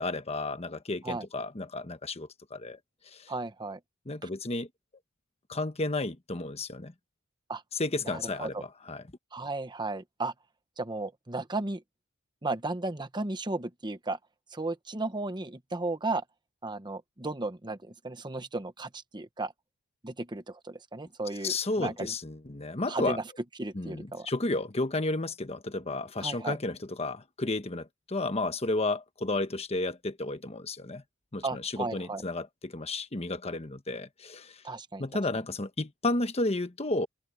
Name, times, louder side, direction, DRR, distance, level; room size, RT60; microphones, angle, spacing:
voice 1, 0.0-2.8 3.1-3.2 4.1-4.7 5.5-6.9 7.8-9.0 21.4-23.2 23.7-31.0 31.3-34.5 35.0-37.1, left 2 dB, 30° left, 1.2 m, -32 dB
voice 2, 3.3-3.8 4.2-4.3 7.5-7.6 8.0-8.6 9.3-10.3 10.8-11.8 12.4-14.2 14.5-16.2 16.6-19.5 20.0-22.1 22.9-23.2 23.6-24.3 26.2-26.6 31.4-32.2 34.6-35.0, right 2 dB, 20° right, 1.0 m, -34 dB
open air
head